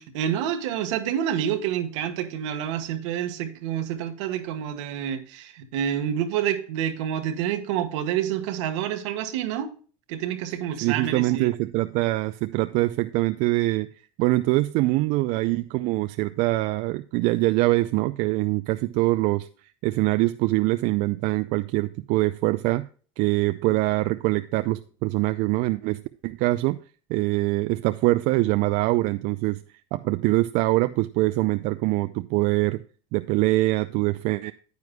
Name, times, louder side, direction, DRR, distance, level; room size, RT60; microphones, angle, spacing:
voice 1, 0.0-9.7 10.1-11.5, right 10 dB, 80° right, 1.3 m, -28 dB
voice 2, 10.8-13.9 14.2-19.5 19.8-22.8 23.2-26.8 27.1-29.6 29.9-32.8 33.1-34.5, right 19 dB, 60° right, 0.4 m, -23 dB
9.5 x 9.4 x 2.2 m
supercardioid pair, 100°, 16 cm